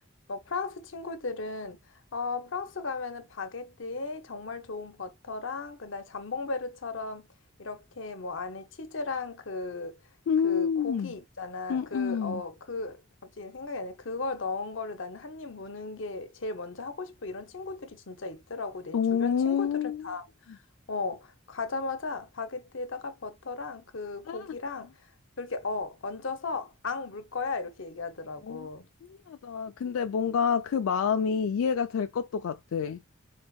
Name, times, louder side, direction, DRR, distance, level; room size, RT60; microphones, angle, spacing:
voice 1, 0.3-7.3 7.6-10.0 10.4-20.6 20.9-24.9 25.4-28.9, left 3 dB, 65° left, 0.8 m, -36 dB
voice 2, 10.3-11.1 11.7-12.4 18.9-20.1 24.3-24.6 28.4-28.7 29.3-33.0, left 7 dB, 85° left, 0.3 m, -28 dB
4.1 x 3.5 x 2.3 m
head